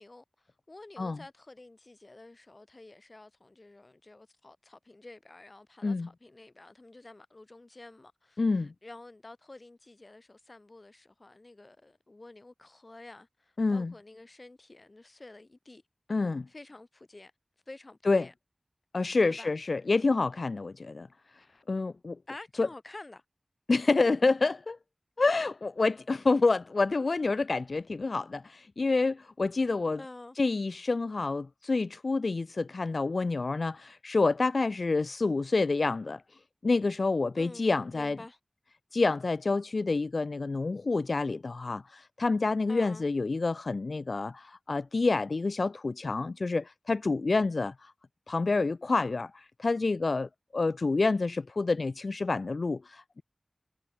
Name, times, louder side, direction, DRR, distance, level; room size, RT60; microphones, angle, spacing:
voice 1, 0.0-15.8 16.5-17.3 17.7-18.3 19.2-19.5 22.3-23.2 29.9-30.4 37.3-37.7 37.9-38.4 42.7-43.1, left 2 dB, 55° left, 6.5 m, -49 dB
voice 2, 8.4-8.7 13.6-13.9 16.1-16.5 18.1-18.3 18.9-21.1 21.3-22.2 22.6-22.7 23.7-24.8 25.2-30.0 30.4-36.2 36.6-38.2 38.9-47.9 48.3-53.2, left 3 dB, 85° left, 0.5 m, -28 dB
wide cardioid pair, 45°, 0 cm